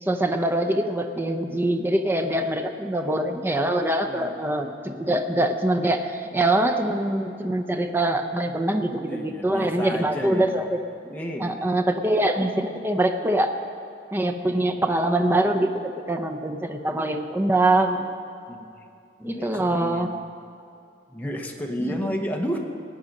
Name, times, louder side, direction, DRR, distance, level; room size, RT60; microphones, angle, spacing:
voice 1, 0.0-10.8 11.4-13.5 14.1-18.1 19.2-20.1 21.8-22.3, right 1 dB, 10° right, 5 dB, 0.6 m, -24 dB
voice 2, 9.0-10.6 11.0-11.8 14.4-14.6 16.4-16.5 18.5-18.7 19.2-20.2 21.1-22.6, equal, 10° left, 1 dB, 0.9 m, -32 dB
18.0 x 8.7 x 5.3 m, 2.5 s
head